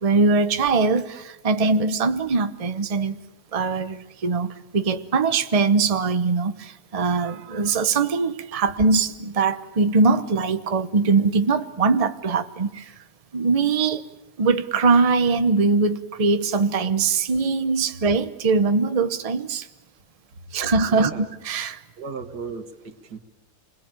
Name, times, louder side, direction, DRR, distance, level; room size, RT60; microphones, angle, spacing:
voice 1, 0.0-3.2 3.5-12.9 13.3-14.0 14.4-19.7 20.5-21.8, right 4 dB, 30° right, 0.9 m, -22 dB
voice 2, 20.4-21.3 22.0-23.2, right 4 dB, 90° right, 2.2 m, -36 dB
27.5 x 21.5 x 8.9 m
omnidirectional pair, 1.7 m